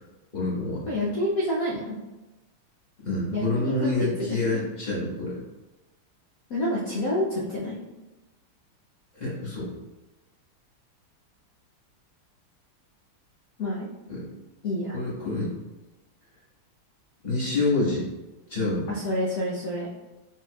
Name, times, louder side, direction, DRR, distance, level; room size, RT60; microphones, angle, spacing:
voice 1, 0.3-0.9 3.0-5.4 9.1-9.7 14.1-14.3 14.9-15.5 17.2-18.1 18.5-18.9, left 2 dB, 25° left, -8 dB, 1.1 m, -27 dB
voice 2, 0.9-2.0 3.3-4.1 4.4-4.6 6.5-7.8 13.6-13.9 14.6-15.0 18.9-19.9, left 1 dB, 85° left, -5 dB, 0.7 m, -28 dB
4.6 x 4.2 x 2.3 m, 1.1 s
omnidirectional pair, 2.4 m